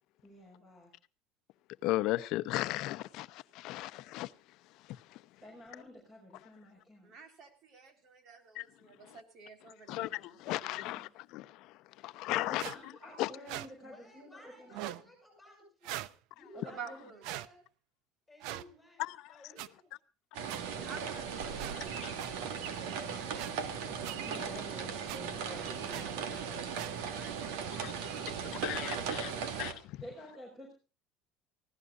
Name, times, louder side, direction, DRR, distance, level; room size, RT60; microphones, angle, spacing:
voice 1, 0.2-0.9 5.4-7.1 10.9-11.1 12.0-15.0 16.5-17.1 24.2-26.7 30.0-30.7, equal, 15° right, 5.3 m, -50 dB
voice 2, 1.8-4.3 4.9-5.2 8.5-8.6 9.9-11.7 12.0-12.6 13.2-13.3 19.0-19.2 27.8-27.9 28.6-29.3 29.6-30.0, left 17 dB, 60° left, 0.8 m, -35 dB
voice 3, 7.0-10.8 16.6-17.3 20.9-21.9 25.4-25.7 27.0-27.9, right 6 dB, 45° right, 4.1 m, -50 dB
sound 1, 12.6-12.8 13.5-13.7 14.7-15.0 15.8-16.1 17.2-17.5 18.4-18.6 19.6-19.7 20.5-20.6 21.6-21.7 22.2-22.3 23.4-23.5 24.0-24.1 25.1-25.2 25.9-26.0 26.7-26.9, right 13 dB, 70° right, 0.8 m, -40 dB
voice 4, 13.8-16.8 17.1-17.6 18.3-19.0 19.3-19.9 21.4-24.2 25.5-26.7 27.1-27.4 28.3-29.0 29.3-29.5, left 1 dB, ahead, 7.6 m, -58 dB
sound 2, 20.3-29.7, right 7 dB, 85° right, 2.7 m, -38 dB
24.0 x 16.0 x 2.5 m
cardioid pair, 155°, 0 cm